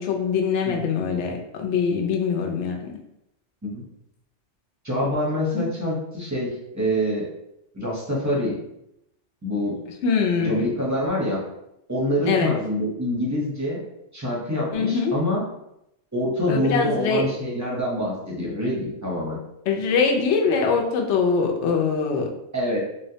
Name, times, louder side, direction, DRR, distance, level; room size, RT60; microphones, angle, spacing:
voice 1, 0.0-2.9 5.5-5.6 10.0-10.7 12.2-12.5 14.7-15.2 16.5-17.2 19.7-22.3, left 5 dB, 75° left, 2 dB, 0.9 m, -23 dB
voice 2, 4.8-7.3 7.7-8.6 9.4-9.8 10.4-11.4 11.9-13.8 14.1-15.5 16.1-19.4 22.5-22.8, equal, 20° right, -4 dB, 0.6 m, -26 dB
3.8 x 2.1 x 2.7 m, 0.82 s
omnidirectional pair, 1.2 m